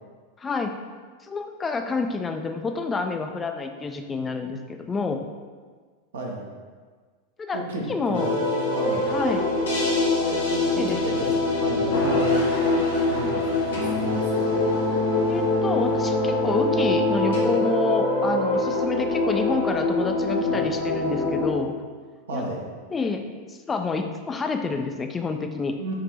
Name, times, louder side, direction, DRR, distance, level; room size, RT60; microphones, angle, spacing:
voice 1, 0.4-0.8 1.2-5.2 7.4-7.6 7.9-8.4 9.1-9.5 10.8-11.0 15.3-21.8 22.3-22.4 22.9-25.8, left 4 dB, 15° left, 6 dB, 0.3 m, -28 dB
voice 2, 6.1-6.5 7.5-8.2 8.6-9.1 10.2-12.4 13.1-14.5 20.3-20.6 22.3-22.6 25.8-25.9, right 2 dB, 65° right, -2 dB, 0.7 m, -32 dB
sound 1, 8.1-21.5, left 2 dB, 65° left, 0.9 m, -23 dB
4.9 x 2.5 x 3.1 m, 1.5 s
figure-of-eight pair, 90°, 0 cm